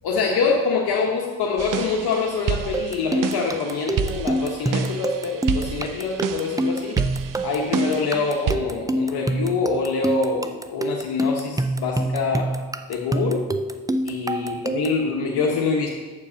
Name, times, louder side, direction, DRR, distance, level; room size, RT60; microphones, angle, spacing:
voice 1, 0.0-7.0 7.4-12.5 12.9-13.4 14.0-15.9, left 4 dB, 75° left, -1 dB, 1.1 m, -25 dB
sound 1, 1.6-8.6, right 8 dB, 55° right, 0.6 m, -30 dB
sound 2, 2.7-15.0, right 1 dB, 10° right, 0.4 m, -26 dB
7.3 x 4.6 x 6.8 m, 1.3 s
supercardioid pair, 55°, 39 cm